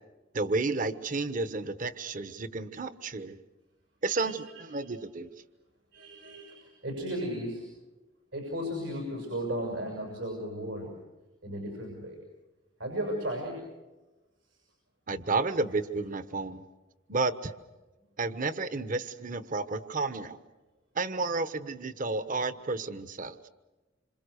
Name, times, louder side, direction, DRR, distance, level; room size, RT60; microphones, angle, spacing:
voice 1, 0.3-3.4 4.0-5.3 15.1-16.6 17.1-17.5 18.2-20.4 20.9-23.4, right 3 dB, 45° right, 12 dB, 1.2 m, -31 dB
voice 2, 5.9-7.7 8.3-11.0 11.4-12.2 12.8-13.7 14.4-14.6, equal, 85° right, 1 dB, 6.9 m, -35 dB
27.5 x 27.0 x 6.6 m, 1.2 s
head